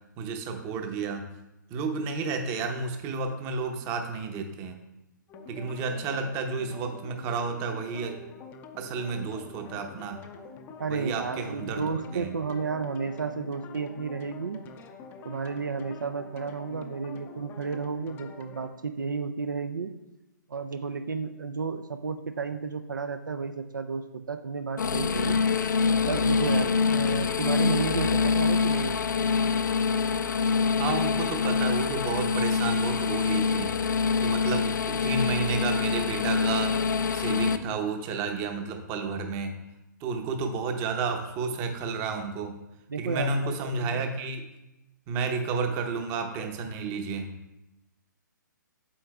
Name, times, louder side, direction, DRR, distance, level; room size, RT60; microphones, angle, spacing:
voice 1, 0.2-1.3 1.7-4.7 5.5-8.2 8.8-10.2 10.9-12.3 30.8-33.8 34.2-36.8 37.1-39.6 40.0-42.6 43.0-44.4 45.1-47.3, right 4 dB, 25° right, 5 dB, 0.8 m, -31 dB
sound 1, 5.3-18.7, left 4 dB, 20° left, 0.5 m, -46 dB
voice 2, 10.8-14.6 15.2-19.9 20.5-25.4 26.0-29.0 42.9-44.0, right 5 dB, 75° right, 8 dB, 0.5 m, -32 dB
sound 2, 24.8-37.6, left 5 dB, 65° left, 0.5 m, -25 dB
8.4 x 7.5 x 2.3 m, 0.95 s
figure-of-eight pair, 125°, 11 cm